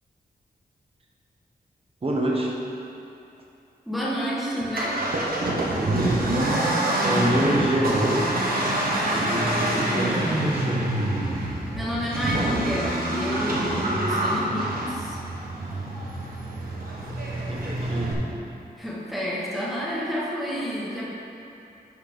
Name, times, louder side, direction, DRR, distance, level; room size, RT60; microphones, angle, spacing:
voice 1, 2.0-2.5 5.7-6.2 7.0-8.3 9.1-10.9 17.4-18.2, right 1 dB, 35° right, -2 dB, 1.2 m, -26 dB
voice 2, 3.8-5.0 11.7-15.2 18.8-21.0, equal, ahead, -8 dB, 1.5 m, -29 dB
Accelerating revving vroom, 4.6-18.1, right 1 dB, 60° right, 1.4 m, -26 dB
11.0 x 4.4 x 5.2 m, 2.8 s
wide cardioid pair, 175°, 17 cm